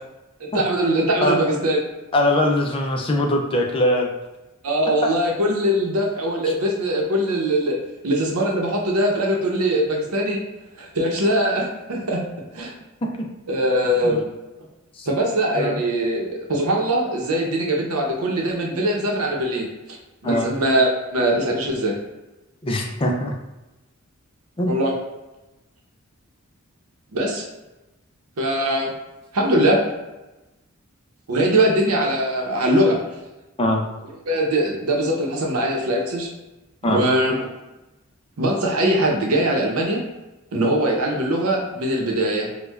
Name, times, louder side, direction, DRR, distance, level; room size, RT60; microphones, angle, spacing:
voice 1, 0.4-1.8 4.6-7.8 8.0-10.4 10.8-12.2 12.5-12.7 13.5-14.3 15.1-19.6 20.2-22.0 24.7-24.9 27.1-27.4 28.4-28.9 29.3-29.8 31.3-33.0 34.3-36.3 36.9-37.5 38.4-40.0 40.5-42.5, right 1 dB, 90° right, -1 dB, 0.7 m, -21 dB
voice 2, 2.1-4.1 14.0-14.2 15.0-15.1 15.6-15.8 20.2-20.5 22.6-23.3 24.6-24.7 33.6-33.9 36.8-37.0, left 1 dB, 25° left, 1 dB, 0.4 m, -21 dB
4.4 x 2.2 x 2.3 m, 1.0 s
head